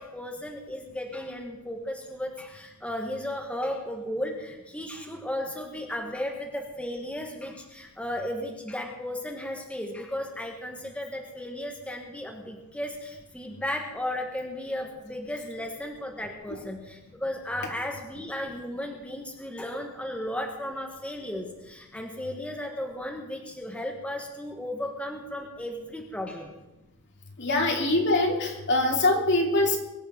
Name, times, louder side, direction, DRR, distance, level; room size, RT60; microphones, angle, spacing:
voice 1, 0.0-26.5 27.5-27.6, left 1 dB, 5° left, 1 dB, 1.7 m, -35 dB
voice 2, 27.4-29.8, left 2 dB, 55° left, 0 dB, 3.1 m, -23 dB
23.0 x 8.8 x 5.8 m, 1.0 s
head